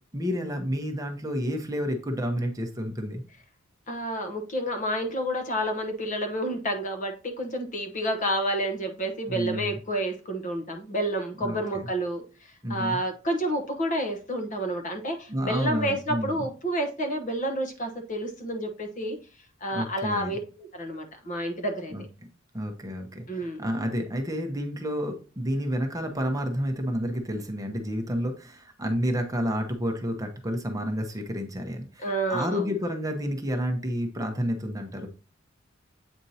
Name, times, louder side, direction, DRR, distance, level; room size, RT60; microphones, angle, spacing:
voice 1, 0.1-3.2 9.3-9.8 11.4-11.9 12.6-13.0 15.3-16.5 19.7-20.3 21.9-22.0 22.5-35.1, equal, 15° right, 4 dB, 0.8 m, -30 dB
voice 2, 3.9-19.2 19.6-21.9 23.3-23.7 32.0-32.7, right 1 dB, 40° left, 5 dB, 1.0 m, -30 dB
8.0 x 4.4 x 2.8 m, 0.36 s
head